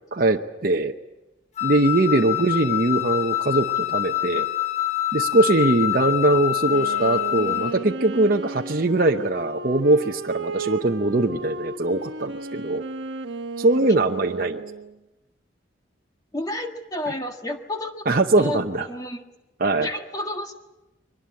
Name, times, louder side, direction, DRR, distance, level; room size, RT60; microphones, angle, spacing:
voice 1, 0.1-0.9 1.6-4.5 5.1-12.8 13.6-14.6 18.1-18.9 19.6-19.9, right 2 dB, 45° right, 2 dB, 0.8 m, -21 dB
Wind instrument woodwind instrument, 1.6-7.8, left 14 dB, 35° left, 1.0 m, -26 dB
Wind instrument woodwind instrument 2, 6.6-15.0, right 4 dB, 65° right, 1.2 m, -34 dB
voice 2, 16.3-18.1 18.4-19.2 19.8-20.5, left 1 dB, 20° left, 4 dB, 1.7 m, -31 dB
23.5 x 19.5 x 8.4 m, 1.0 s
head